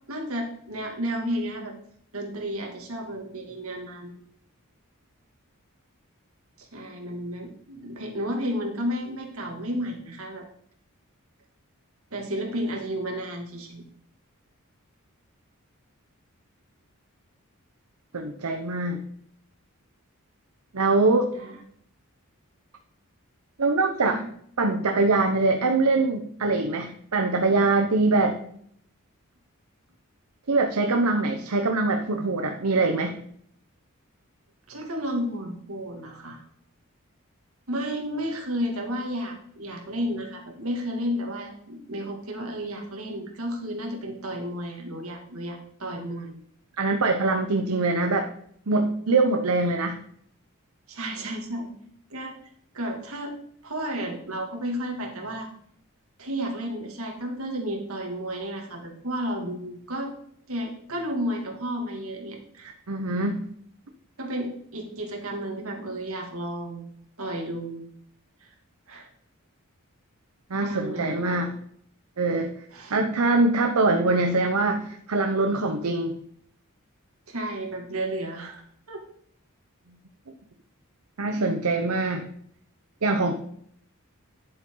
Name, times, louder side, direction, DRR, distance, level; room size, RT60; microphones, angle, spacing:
voice 1, 0.1-1.8 2.1-4.1 6.6-10.5 12.1-13.8 21.3-21.6 24.0-24.3 34.7-36.4 37.7-46.3 50.9-51.7 52.1-52.4 52.7-53.3 53.6-55.5 56.2-60.1 60.5-62.7 64.2-66.9 67.2-67.8 68.4-68.5 68.9-69.1 70.5-71.5 72.7-73.1 73.8-73.9 77.3-79.0, equal, 70° right, 1 dB, 2.4 m, -32 dB
voice 2, 18.1-19.0 20.7-21.3 23.6-24.2 24.6-28.4 30.5-33.2 46.8-48.3 48.7-50.0 62.9-63.4 70.5-71.6 72.2-72.5 72.9-76.1 81.2-82.3 83.0-83.3, right 3 dB, 90° right, 5 dB, 0.9 m, -23 dB
10.0 x 8.0 x 3.9 m, 0.66 s
head